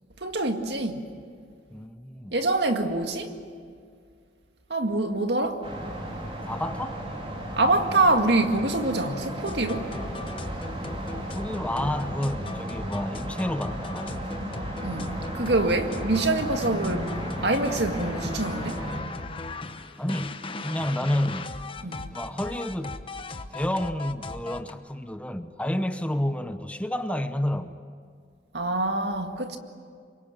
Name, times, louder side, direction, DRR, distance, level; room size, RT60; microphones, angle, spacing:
voice 1, 0.2-1.1 2.3-3.3 4.7-5.6 7.6-9.9 14.8-17.1 17.4-18.9 21.8-22.1 28.5-29.6, right 2 dB, 70° right, 2.1 m, -25 dB
voice 2, 1.7-2.3 6.5-7.0 11.3-14.2 20.0-21.5 22.1-23.0 23.5-27.8, left 1 dB, 5° left, 0.9 m, -30 dB
sound 1, 5.6-19.0, right 1 dB, 35° right, 4.1 m, -35 dB
sound 2, 9.5-24.7, left 2 dB, 30° left, 1.0 m, -37 dB
27.0 x 23.5 x 8.9 m
head